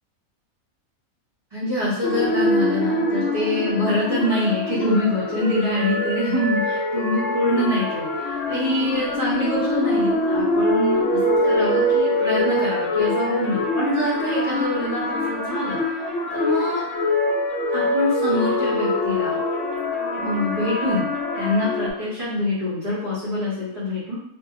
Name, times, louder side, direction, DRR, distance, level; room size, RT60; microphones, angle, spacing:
voice 1, 1.5-15.8 16.3-16.9 17.7-19.4 20.2-21.1 21.4-24.1, left 1 dB, 35° right, -11 dB, 0.7 m, -25 dB
sound 1, 2.0-21.9, left 1 dB, 65° left, 0.7 m, -24 dB
2.6 x 2.2 x 2.7 m, 0.77 s
omnidirectional pair, 1.6 m